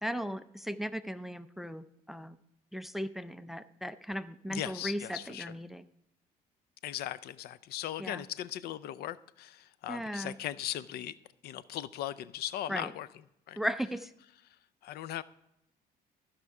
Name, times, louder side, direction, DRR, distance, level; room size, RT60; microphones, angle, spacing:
voice 1, 0.0-2.4 2.7-5.8 8.0-8.3 9.9-10.4 12.7-12.9 13.6-14.1, equal, ahead, 13 dB, 0.4 m, -37 dB
voice 2, 4.5-5.5 6.8-11.2 11.4-13.1 13.5-13.6 14.8-15.2, left 12 dB, 70° left, 17 dB, 0.5 m, -38 dB
14.0 x 5.6 x 4.8 m, 0.80 s
cardioid pair, 110°, 17 cm